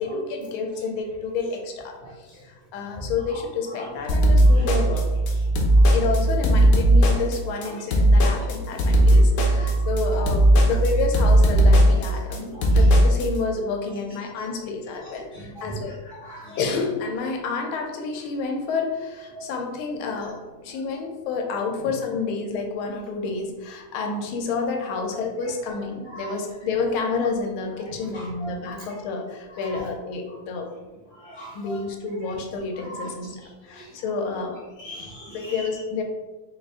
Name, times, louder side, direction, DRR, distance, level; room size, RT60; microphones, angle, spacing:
voice 1, 0.0-5.1 5.9-15.9 16.6-30.7 31.5-34.6 35.2-36.0, left 4 dB, 85° left, 3 dB, 1.5 m, -29 dB
sound 1, 4.1-13.3, right 1 dB, 70° left, 1.1 m, -17 dB
voice 2, 15.3-15.7 16.2-16.6 19.3-19.4 26.1-26.3 28.1-28.5 31.2-31.8 32.9-33.1 34.8-35.7, equal, 50° left, -6 dB, 0.7 m, -39 dB
4.0 x 2.4 x 3.5 m, 1.2 s
omnidirectional pair, 2.3 m